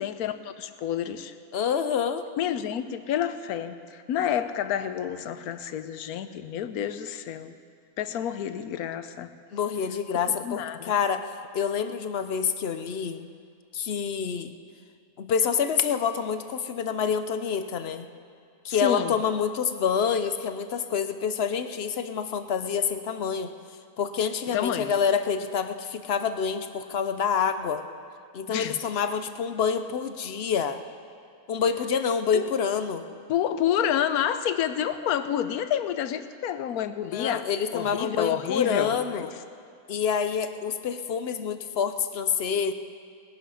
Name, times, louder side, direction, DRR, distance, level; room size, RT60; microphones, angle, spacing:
voice 1, 0.0-1.3 2.4-7.5 8.0-9.3 10.3-10.9 18.7-19.1 24.5-24.9 28.5-28.9 32.3-32.5 33.3-39.3, left 10 dB, 80° left, 11 dB, 1.2 m, -29 dB
voice 2, 1.5-2.2 9.5-13.3 13.7-14.5 15.2-18.1 18.6-23.5 24.0-27.8 28.3-30.8 31.5-33.0 37.0-39.3 39.9-42.7, left 7 dB, 55° left, 10 dB, 0.7 m, -27 dB
19.5 x 11.0 x 5.7 m, 2.2 s
omnidirectional pair, 1.6 m